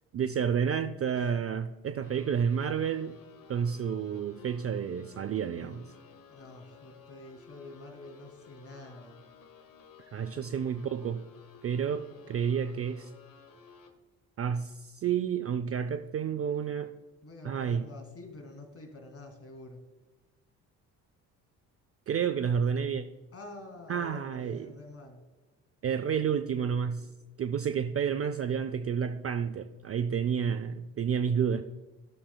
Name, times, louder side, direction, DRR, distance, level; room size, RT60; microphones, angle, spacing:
voice 1, 0.1-3.2 3.5-5.8 10.1-11.2 11.6-13.1 14.4-16.9 17.4-17.9 22.1-23.0 23.9-24.7 25.8-27.1 27.4-31.6, right 7 dB, 35° right, 11 dB, 0.4 m, -30 dB
sound 1, 2.0-13.9, left 6 dB, 50° left, 1.3 m, -55 dB
voice 2, 5.5-6.0 6.3-9.2 10.2-10.5 17.2-19.8 23.3-25.2, left 2 dB, 30° left, 4 dB, 2.2 m, -48 dB
13.5 x 6.9 x 2.3 m, 1.2 s
hypercardioid pair, 60°, 44 cm